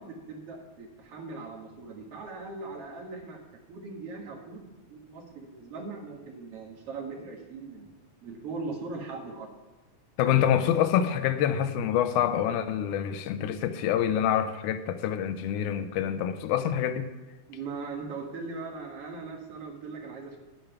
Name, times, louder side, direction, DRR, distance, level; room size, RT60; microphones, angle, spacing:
voice 1, 0.0-3.4 3.7-7.9 8.2-9.5 10.2-10.4 17.5-20.4, right 3 dB, 55° right, 1 dB, 2.4 m, -40 dB
voice 2, 10.2-17.1, left 9 dB, 85° left, 8 dB, 2.1 m, -26 dB
10.0 x 8.8 x 5.7 m, 1.1 s
omnidirectional pair, 3.5 m